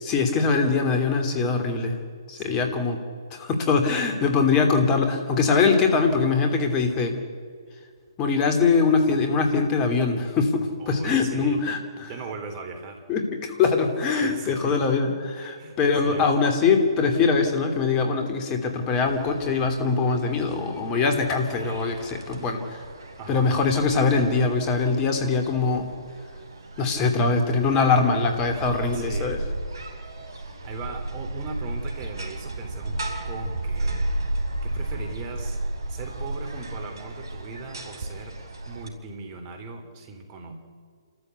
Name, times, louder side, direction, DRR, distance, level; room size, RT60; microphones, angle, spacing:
voice 1, 0.0-2.0 2.3-3.0 3.3-7.2 8.2-12.1 13.1-22.8 23.3-25.9 26.8-29.4, left 4 dB, 25° left, 5 dB, 2.9 m, -22 dB
voice 2, 2.3-2.8 10.8-13.0 14.2-14.8 15.6-15.8 16.0-16.3 23.2-23.6 28.9-29.4 30.6-34.1 34.6-35.6 35.9-38.4 38.7-40.5, right 4 dB, 30° right, 5 dB, 3.5 m, -38 dB
sound 1, 19.1-38.9, right 1 dB, 60° right, 3.6 m, -34 dB
28.0 x 14.0 x 8.4 m, 2.1 s
figure-of-eight pair, 135°, 3 cm